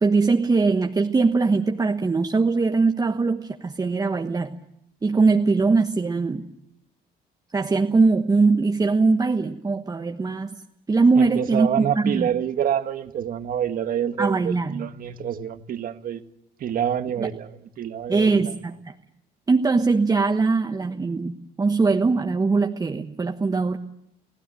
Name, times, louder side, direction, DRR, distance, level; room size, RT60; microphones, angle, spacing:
voice 1, 0.0-4.5 5.0-6.4 7.5-10.5 10.9-12.3 14.2-14.8 17.2-17.3 18.1-18.9 19.5-23.8, right 4 dB, 20° right, 1.3 m, -21 dB
voice 2, 11.1-16.2 16.6-18.5, right 9 dB, 55° right, 1.6 m, -27 dB
27.5 x 16.5 x 7.7 m
cardioid pair, 110°, 17 cm